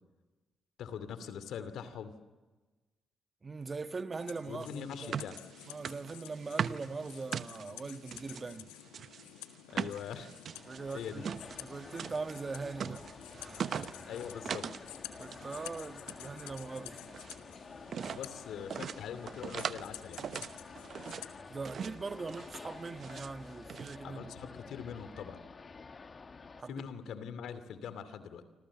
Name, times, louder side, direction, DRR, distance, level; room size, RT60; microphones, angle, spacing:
voice 1, 0.8-2.2 4.5-5.4 9.7-10.3 10.9-11.3 14.0-14.7 18.1-20.2 24.0-25.4 26.7-28.4, left 8 dB, 75° left, 2.5 m, -42 dB
voice 2, 3.4-5.2 5.7-8.7 10.6-13.1 13.3-14.1 15.2-17.0 21.5-24.5 26.6-26.8, right 4 dB, 40° right, 1.4 m, -41 dB
sound 1, 4.2-21.4, left 13 dB, 90° left, 1.6 m, -51 dB
sound 2, 4.6-8.4 8.9-14.9 15.1-15.7 16.0-17.4 17.9-18.3 18.7-19.9 20.2-21.3 21.7-22.0 22.3-23.3 23.7-24.0, right 7 dB, 60° right, 1.0 m, -40 dB
sound 3, 10.5-26.6, left 4 dB, 40° left, 1.7 m, -50 dB
28.5 x 26.0 x 7.2 m
hypercardioid pair, 50°, 0 cm